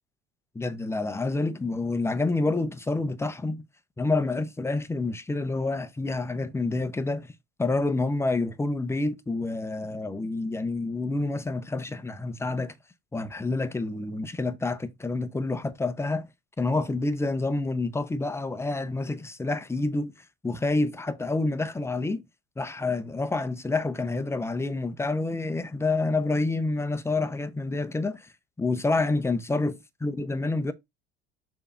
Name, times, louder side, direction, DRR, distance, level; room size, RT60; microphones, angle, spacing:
voice 1, 0.5-3.6 4.0-7.3 7.6-12.7 13.1-16.3 16.6-20.1 20.4-22.2 22.6-28.3 28.6-30.7, left 3 dB, 10° left, 0.8 m, -28 dB
6.7 x 2.9 x 4.8 m
figure-of-eight pair, 65°, 32 cm